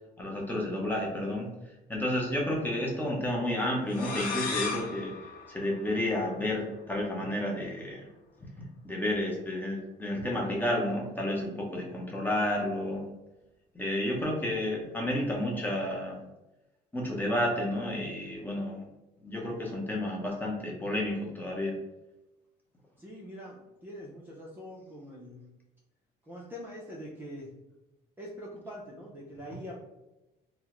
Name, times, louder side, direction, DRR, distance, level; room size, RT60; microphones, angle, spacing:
voice 1, 0.2-1.5 1.9-5.1 5.5-8.1 8.6-13.0 13.7-16.2 16.9-18.8 19.2-21.7, left 1 dB, 10° left, -2 dB, 0.9 m, -31 dB
sound 1, 3.9-6.5, left 4 dB, 55° left, 0.8 m, -36 dB
voice 2, 23.0-25.4 26.3-27.5 28.2-29.8, equal, 10° right, -5 dB, 0.6 m, -44 dB
3.5 x 2.1 x 3.0 m, 0.99 s
cardioid pair, 110°, 17 cm